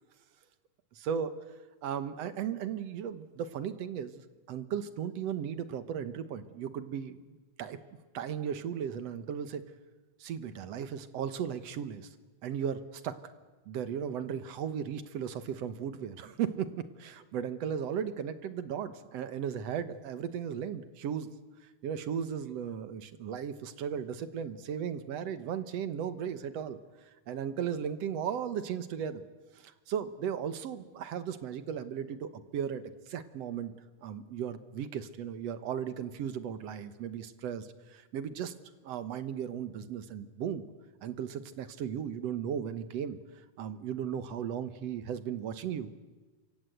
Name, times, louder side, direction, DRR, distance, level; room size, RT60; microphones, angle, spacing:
voice 1, 1.0-1.3 1.8-4.2 4.5-7.2 7.6-7.8 8.1-9.6 10.2-12.1 12.4-13.3 13.7-16.7 17.0-21.3 21.8-26.8 27.3-29.2 29.6-33.7 34.0-38.5 38.8-40.7 41.0-43.2 43.6-45.9, right 8 dB, 65° right, 12 dB, 2.1 m, -36 dB
28.0 x 25.0 x 8.1 m, 1.2 s
omnidirectional pair, 3.5 m